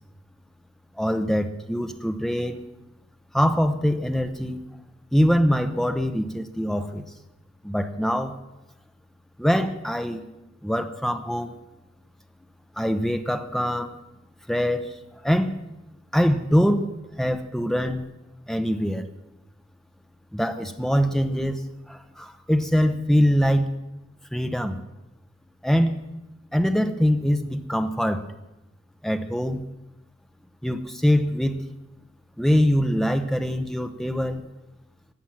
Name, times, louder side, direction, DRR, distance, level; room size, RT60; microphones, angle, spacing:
voice 1, 1.0-2.6 3.3-4.6 5.1-7.0 7.6-8.3 9.4-10.2 10.6-11.6 12.8-13.9 14.5-15.0 15.2-15.6 16.1-16.9 17.2-18.0 18.5-19.1 20.3-21.6 21.9-23.7 24.3-24.8 25.6-25.9 26.5-28.2 29.0-29.6 30.6-31.6 32.4-34.4, equal, ahead, 7 dB, 0.8 m, -23 dB
15.0 x 9.1 x 7.4 m, 0.97 s
head